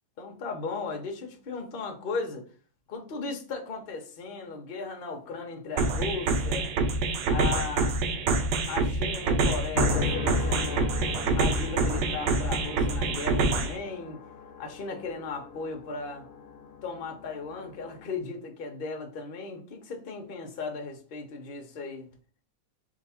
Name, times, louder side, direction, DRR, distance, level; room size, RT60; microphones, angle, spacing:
voice 1, 0.2-2.4 2.9-6.7 7.3-8.0 8.7-10.9 11.3-14.2 14.6-16.3 16.8-22.1, left 4 dB, 50° left, 3 dB, 0.7 m, -36 dB
sound 1, 5.8-13.8, right 3 dB, 75° right, 1.2 m, -26 dB
sound 2, 9.7-18.2, left 5 dB, 75° left, 0.9 m, -37 dB
3.8 x 2.7 x 4.1 m, 0.41 s
omnidirectional pair, 2.1 m